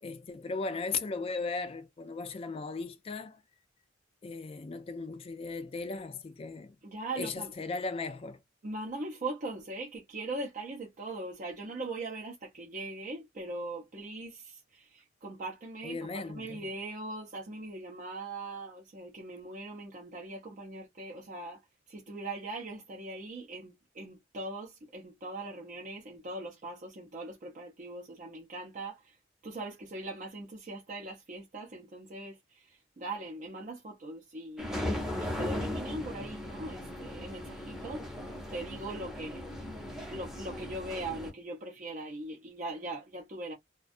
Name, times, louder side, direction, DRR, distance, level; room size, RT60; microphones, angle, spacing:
voice 1, 0.0-3.4 4.2-6.8 7.2-8.4 15.8-16.7, left 4 dB, 30° left, 0.3 m, -37 dB
voice 2, 6.8-7.5 8.6-16.0 16.3-21.6 21.9-29.0 29.4-32.6 33.0-38.0 38.5-39.4 40.1-43.5, right 2 dB, 45° right, 0.5 m, -40 dB
sound 1, 34.6-41.3, left 1 dB, ahead, 0.7 m, -37 dB
2.4 x 2.2 x 2.5 m
head